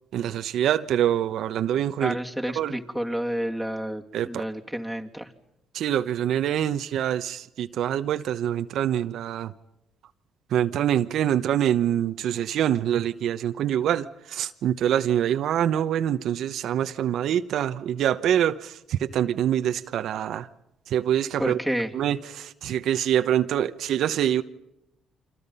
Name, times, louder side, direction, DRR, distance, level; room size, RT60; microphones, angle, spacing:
voice 1, 0.1-2.2 2.6-2.7 4.1-4.4 5.7-9.5 10.5-20.5 20.9-21.6 21.9-24.4, right 10 dB, 70° right, 0.9 m, -25 dB
voice 2, 2.0-5.3 21.4-21.9, equal, 5° left, 2.6 m, -30 dB
29.0 x 26.0 x 5.6 m
cardioid pair, 85°, 0 cm